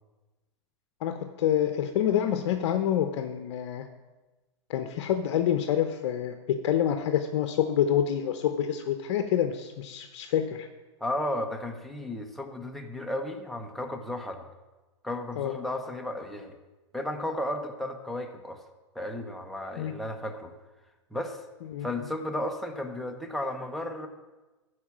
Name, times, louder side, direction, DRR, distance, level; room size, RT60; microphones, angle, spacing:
voice 1, 1.0-3.9 4.7-10.7 15.4-15.6 19.8-19.9 21.7-21.9, left 10 dB, 65° left, 7 dB, 0.8 m, -27 dB
voice 2, 11.0-14.4 15.0-16.5 16.9-18.6 18.9-20.5 21.1-21.4 21.8-24.1, left 1 dB, ahead, 2 dB, 1.0 m, -34 dB
13.5 x 4.8 x 7.3 m, 1.2 s
hypercardioid pair, 120°, 16 cm